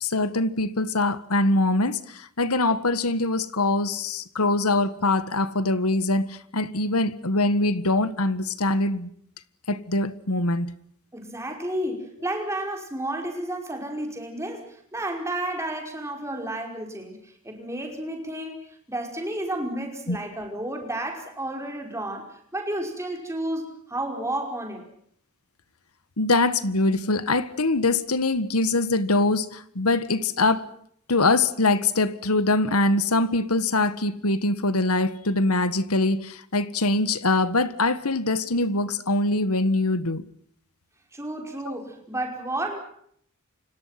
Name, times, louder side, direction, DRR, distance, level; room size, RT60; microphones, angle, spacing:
voice 1, 0.0-9.1 9.7-10.7 20.1-20.2 26.2-30.7 31.1-40.2 41.7-41.8, left 2 dB, 85° left, 1.7 m, -23 dB
voice 2, 11.1-24.8 41.1-42.8, right 1 dB, 15° right, 5.4 m, -32 dB
29.5 x 26.5 x 6.0 m
head